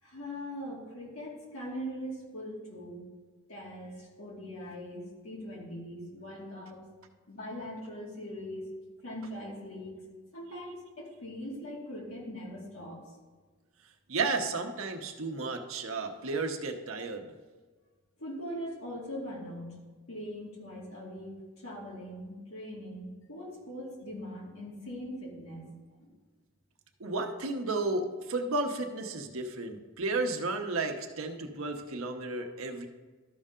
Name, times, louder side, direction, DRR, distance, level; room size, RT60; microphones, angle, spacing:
voice 1, 0.0-3.0 3.5-6.8 7.3-8.7 9.0-10.0 10.3-13.0 18.2-19.8 20.1-25.7 26.0-26.1, equal, 85° left, -3 dB, 2.4 m, -41 dB
voice 2, 14.1-17.3 27.0-32.9, right 3 dB, 75° right, 4 dB, 0.9 m, -33 dB
13.0 x 5.5 x 3.7 m, 1.4 s
head